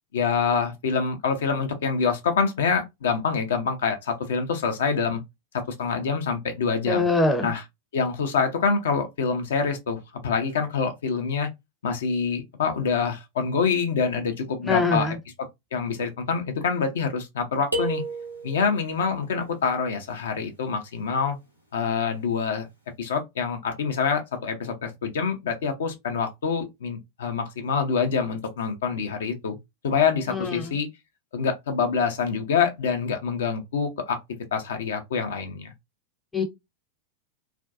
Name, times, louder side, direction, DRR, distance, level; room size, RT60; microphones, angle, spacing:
voice 1, 0.1-5.2 5.5-7.0 7.4-7.6 7.9-11.5 11.8-15.1 15.7-18.0 18.4-21.4 21.7-22.7 23.0-29.6 29.8-30.9 31.3-34.2 34.5-35.7, left 5 dB, 60° left, 0.5 m, -26 dB
voice 2, 6.9-7.5 14.6-15.1 30.3-30.8 36.3-36.4, left 3 dB, 10° left, 0.6 m, -23 dB
sound 1, 17.7-18.8, right 2 dB, 90° left, 0.8 m, -30 dB
2.5 x 2.2 x 2.4 m
figure-of-eight pair, 90°, 0 cm